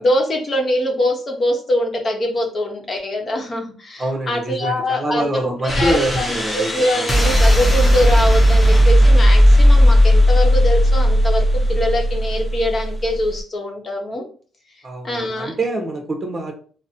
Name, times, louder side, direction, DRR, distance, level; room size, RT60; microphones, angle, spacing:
voice 1, 0.0-14.3 15.0-15.5, left 1 dB, 40° left, 2 dB, 0.9 m, -23 dB
voice 2, 4.0-7.1 14.8-16.5, right 1 dB, 30° right, 3 dB, 0.9 m, -25 dB
sound 1, 5.7-13.4, equal, 15° left, 0.8 m, -15 dB
4.0 x 2.1 x 2.7 m, 0.42 s
cardioid pair, 90°, 0 cm